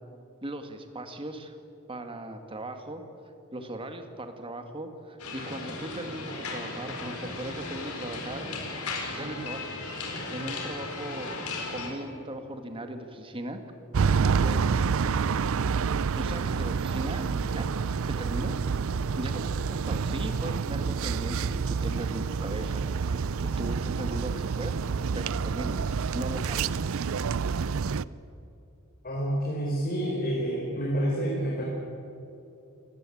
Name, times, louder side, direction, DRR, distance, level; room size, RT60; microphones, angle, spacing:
voice 1, 0.4-1.6 1.9-3.0 3.5-8.5 9.1-9.7 10.0-11.4 11.7-13.6 14.4-14.8 16.1-17.7 18.1-18.6 19.2-24.8 25.1-25.8 26.1-26.9, right 1 dB, 25° right, 6 dB, 2.0 m, -38 dB
sound 1, 5.2-11.9, left 3 dB, 90° left, 4.4 m, -36 dB
sound 2, 13.9-28.0, right 5 dB, 65° right, 0.5 m, -28 dB
voice 2, 29.0-31.6, right 1 dB, 40° left, -3 dB, 4.2 m, -28 dB
28.5 x 16.5 x 8.6 m, 2.8 s
head